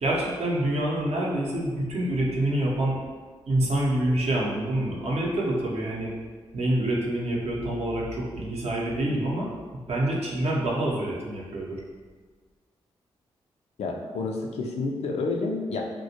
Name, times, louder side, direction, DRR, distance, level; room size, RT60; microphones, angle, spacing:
voice 1, 0.0-3.0 3.5-6.1 6.5-9.5 9.9-11.8, right 1 dB, 65° right, -3 dB, 0.6 m, -26 dB
voice 2, 13.8-16.0, left 3 dB, 70° left, 2 dB, 0.4 m, -29 dB
2.2 x 2.0 x 2.7 m, 1.5 s
supercardioid pair, 50°, 11 cm